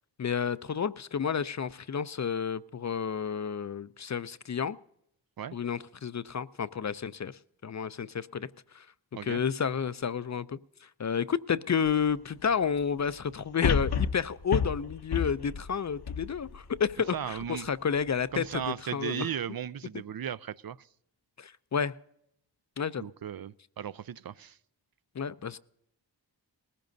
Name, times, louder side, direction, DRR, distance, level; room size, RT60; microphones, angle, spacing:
voice 1, 0.2-4.8 5.5-8.9 9.2-18.6 18.9-19.3 21.4-22.0 22.8-23.1 25.1-25.6, left 7 dB, 40° left, 0.4 m, -31 dB
sound 1, 13.6-16.9 17.4-17.5, left 6 dB, 60° left, 0.8 m, -30 dB
voice 2, 17.1-17.7 18.3-20.9 23.0-24.6, right 9 dB, 55° right, 0.4 m, -36 dB
19.5 x 15.5 x 2.6 m
wide cardioid pair, 60°, 44 cm